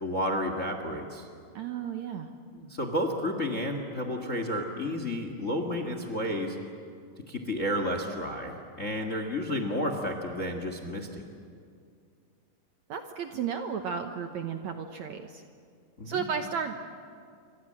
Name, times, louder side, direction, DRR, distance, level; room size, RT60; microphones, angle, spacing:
voice 1, 0.0-1.3 2.5-6.6 7.3-11.2 16.0-16.3, equal, 35° left, 6 dB, 1.2 m, -31 dB
voice 2, 1.6-2.3 12.9-15.4 16.1-16.7, right 7 dB, 65° right, 6 dB, 1.9 m, -33 dB
28.5 x 25.0 x 7.6 m, 2.3 s
omnidirectional pair, 4.3 m